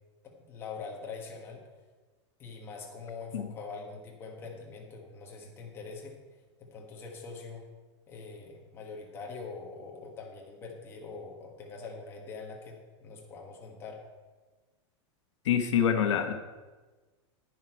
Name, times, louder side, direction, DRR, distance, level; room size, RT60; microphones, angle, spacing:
voice 1, 0.2-1.6 2.4-6.2 6.6-7.6 8.1-14.0, left 4 dB, 15° left, -1 dB, 1.5 m, -43 dB
voice 2, 15.4-16.3, left 8 dB, 80° left, 7 dB, 1.1 m, -26 dB
10.5 x 9.8 x 4.5 m, 1.3 s
supercardioid pair, 175°, 15 cm